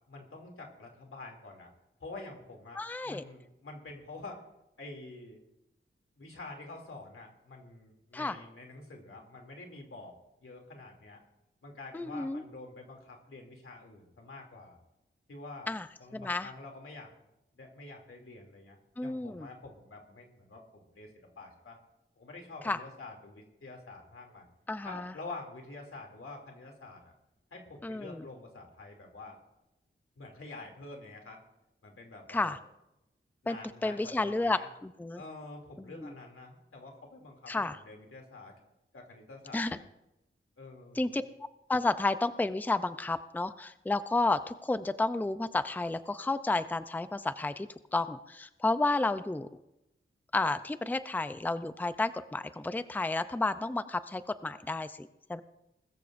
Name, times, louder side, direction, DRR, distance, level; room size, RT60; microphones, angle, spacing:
voice 1, 0.1-1.7 2.0-4.5 4.8-5.4 6.2-11.2 11.6-14.8 15.3-17.1 17.5-18.8 19.0-21.8 22.2-24.5 24.8-27.1 27.5-29.4 30.2-31.4 31.8-32.6 33.4-34.7 35.1-38.6 38.9-39.9 40.6-41.2, left 2 dB, 90° left, 1 dB, 2.8 m, -47 dB
voice 2, 2.8-3.2 8.1-8.4 11.9-12.4 15.7-15.9 16.1-16.5 19.0-19.5 22.6-22.8 24.7-25.1 27.8-28.2 32.3-32.6 33.5-33.6 33.8-35.2 35.8-36.1 37.5-37.8 39.5-39.8 41.0-41.2 41.7-49.6 50.3-55.4, left 2 dB, 10° left, 12 dB, 0.5 m, -31 dB
21.0 x 14.0 x 2.6 m, 0.89 s
wide cardioid pair, 90°, 21 cm